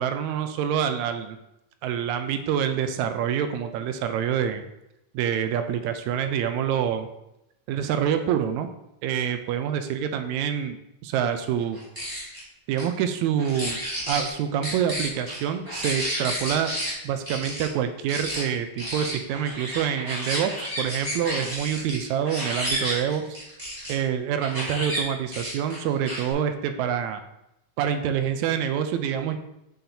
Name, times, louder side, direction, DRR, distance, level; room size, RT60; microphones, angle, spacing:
voice 1, 0.0-1.4 1.8-4.6 5.1-7.1 7.7-8.7 9.0-10.8 11.0-11.8 12.7-13.8 14.1-16.7 17.0-23.2 23.9-27.2 27.8-29.4, right 8 dB, 80° right, 8 dB, 1.7 m, -26 dB
sound 1, 11.7-12.4 12.8-12.9 13.4-14.3 14.6-16.9 17.3-17.7 18.1-18.4 18.8-23.9 24.4-25.0 25.3-26.3, equal, 10° right, 1.7 m, -31 dB
6.6 x 5.8 x 2.7 m, 0.85 s
omnidirectional pair, 3.6 m